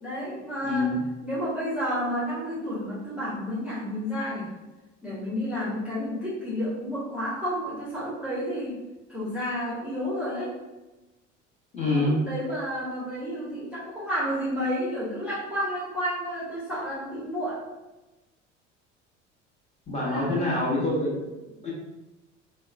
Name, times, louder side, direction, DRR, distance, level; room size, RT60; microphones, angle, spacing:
voice 1, 0.0-0.9 1.2-4.5 5.0-8.8 9.1-10.5 11.9-17.6 20.0-21.0, equal, 5° right, -9 dB, 0.8 m, -31 dB
voice 2, 0.6-1.0 11.7-12.2 19.9-21.3 21.6-21.7, left 2 dB, 20° left, -5 dB, 1.1 m, -26 dB
4.2 x 2.1 x 2.3 m, 1.1 s
figure-of-eight pair, 65°, 37 cm